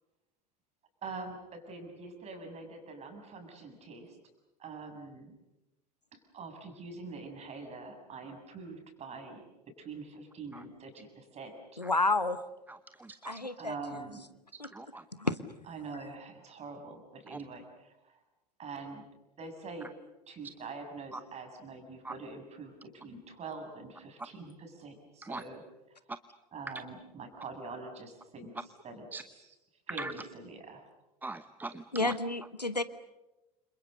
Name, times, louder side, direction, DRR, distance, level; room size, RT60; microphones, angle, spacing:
voice 1, 1.0-4.2 4.6-5.3 6.1-9.5 9.8-11.8 13.6-14.3 15.7-18.2 18.6-19.1 19.4-19.9 20.3-25.6 26.5-29.5 29.9-30.9, right 3 dB, 30° right, 6 dB, 7.1 m, -45 dB
voice 2, 11.8-12.4 13.2-13.7 14.6-14.7 15.1-15.4 31.9-32.8, left 2 dB, 90° left, 14 dB, 1.1 m, -30 dB
voice 3, 12.7-13.5 14.7-15.0 17.3-17.4 21.1-21.2 22.0-22.1 25.2-25.4 29.1-29.2 30.0-30.1 31.2-32.1, right 2 dB, 10° right, 13 dB, 0.9 m, -41 dB
30.0 x 27.0 x 6.7 m, 1.0 s
figure-of-eight pair, 75°, 20 cm